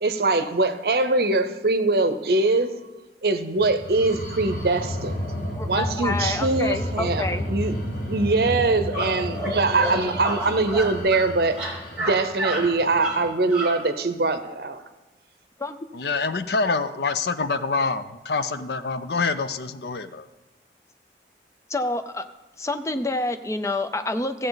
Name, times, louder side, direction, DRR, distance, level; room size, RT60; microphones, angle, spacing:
voice 1, 0.0-2.7 3.2-5.3 5.7-11.6 12.0-14.8, right 3 dB, 60° right, 10 dB, 0.7 m, -23 dB
sound 1, 3.6-13.3, left 1 dB, 50° left, 1.4 m, -32 dB
voice 2, 5.5-7.5 15.6-15.8 21.7-22.2 22.6-24.5, left 2 dB, 15° left, 9 dB, 0.5 m, -28 dB
sound 2, 8.9-9.1 9.3-9.5 9.8-9.9 10.2-11.2 11.5-12.1 12.4-12.6 13.0-13.2 13.5-13.7, right 1 dB, 10° right, 2.9 m, -29 dB
voice 3, 15.9-20.3, left 4 dB, 70° left, 12 dB, 0.6 m, -26 dB
15.0 x 7.7 x 4.0 m, 1.1 s
head